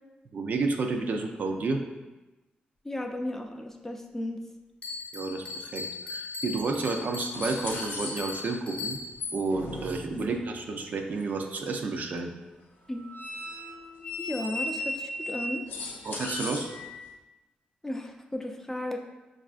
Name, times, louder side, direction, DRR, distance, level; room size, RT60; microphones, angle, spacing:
voice 1, 0.3-1.8 5.1-9.0 9.3-12.3 16.0-16.7, right 3 dB, 60° right, 4 dB, 0.4 m, -31 dB
voice 2, 2.8-4.4 10.1-10.3 12.9-13.1 14.2-15.6 17.8-19.0, left 1 dB, 15° left, 3 dB, 0.3 m, -34 dB
Bell, 4.8-9.3, left 4 dB, 45° left, 0.7 m, -38 dB
sound 1, 6.5-6.6 7.3-8.6 9.1-10.5 12.8-17.1, left 2 dB, 80° left, 0.5 m, -37 dB
5.2 x 2.4 x 2.4 m, 1.1 s
cardioid pair, 100°, 3 cm